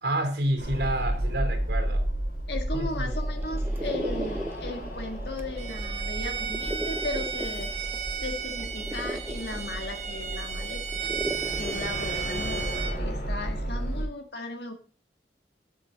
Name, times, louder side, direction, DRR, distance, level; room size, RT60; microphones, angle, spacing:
voice 1, 0.0-2.0 2.7-3.1, right 1 dB, 70° right, 3.2 m, -29 dB
sound 1, 0.6-14.0, right 1 dB, 45° left, 4.2 m, -32 dB
voice 2, 2.5-7.7 8.2-10.8 11.6-14.7, left 2 dB, 65° left, 1.6 m, -36 dB
sound 2, 2.7-13.0, right 1 dB, 10° right, 0.5 m, -39 dB
Bowed string instrument, 5.6-13.0, right 7 dB, 40° right, 1.2 m, -34 dB
11.5 x 7.6 x 3.8 m
head